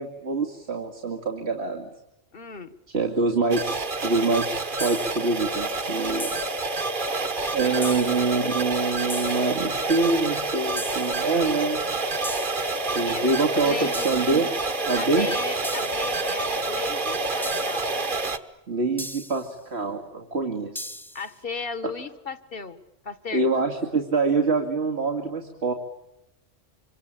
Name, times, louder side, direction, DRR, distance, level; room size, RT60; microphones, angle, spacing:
voice 1, 0.0-1.9 2.9-6.4 7.5-11.8 12.8-14.5 14.8-15.3 18.7-21.0 23.3-25.7, right 3 dB, 80° right, 3 dB, 2.6 m, -25 dB
voice 2, 2.3-2.7 7.6-8.1 13.0-13.3 13.6-14.1 14.9-17.9 21.1-23.5, left 5 dB, 60° left, 13 dB, 1.8 m, -35 dB
sound 1, 3.5-18.4, right 2 dB, 50° right, 1.6 m, -28 dB
sound 2, 4.8-5.3 6.2-6.7 7.8-8.3 9.1-9.6 10.8-11.3 12.2-12.8 13.9-14.5 15.6-16.2 17.4-18.0 19.0-19.5 20.8-21.3, equal, ahead, 0.8 m, -38 dB
26.5 x 25.5 x 8.9 m, 0.88 s
omnidirectional pair, 1.1 m